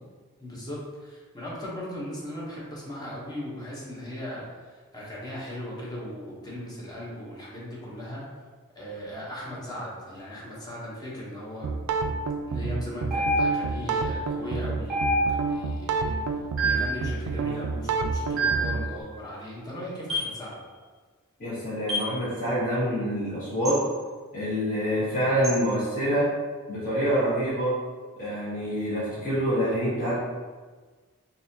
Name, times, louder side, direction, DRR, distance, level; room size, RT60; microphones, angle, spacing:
voice 1, 0.4-8.2 8.7-11.7 12.5-16.2 16.6-20.6, equal, 20° left, -6 dB, 0.9 m, -38 dB
sound 1, 11.6-18.9, right 4 dB, 80° right, 0.3 m, -29 dB
sound 2, 13.1-13.8 14.9-15.6 16.6-17.0 18.4-18.8 20.1-20.4 21.9-22.2 23.6-23.8 25.4-25.6, right 1 dB, ahead, 1.3 m, -26 dB
voice 2, 21.4-23.8 24.3-26.3 26.7-27.8 28.2-30.2, equal, 40° left, -10 dB, 1.5 m, -26 dB
4.0 x 2.8 x 2.7 m, 1.4 s
head